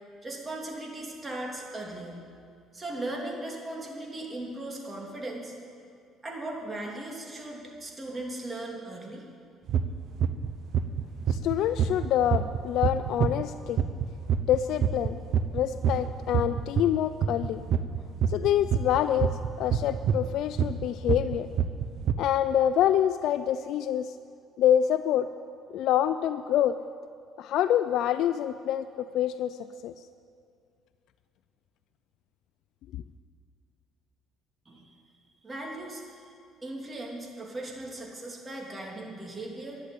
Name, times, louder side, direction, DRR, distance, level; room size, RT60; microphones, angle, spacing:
voice 1, 0.2-2.2 2.7-5.5 6.2-9.2 34.7-34.9 35.4-36.3 36.6-39.8, right 2 dB, 20° right, -1 dB, 2.7 m, -38 dB
sound 1, 9.7-9.8 10.2-10.5 10.7-17.0 17.2-22.1, right 8 dB, 60° right, 0.7 m, -25 dB
voice 2, 11.3-13.8 14.5-15.2 15.5-17.6 18.3-21.5 22.2-24.2 24.6-25.3 25.7-26.8 27.4-29.6 29.8-29.9, left 10 dB, 70° left, 11 dB, 0.4 m, -26 dB
11.5 x 11.5 x 8.3 m, 2.3 s
cardioid pair, 100°, 0 cm